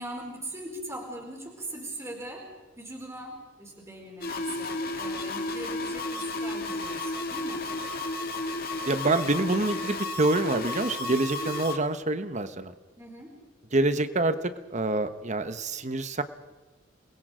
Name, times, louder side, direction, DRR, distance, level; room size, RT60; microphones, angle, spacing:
voice 1, 0.0-2.5 2.8-7.7 13.0-13.4, right 1 dB, 15° right, 0 dB, 4.4 m, -40 dB
sound 1, 4.2-11.8, left 2 dB, 50° left, 2.0 m, -33 dB
voice 2, 8.8-12.7 13.7-16.2, right 2 dB, 40° right, 11 dB, 1.2 m, -26 dB
28.5 x 21.5 x 5.1 m, 1.2 s
head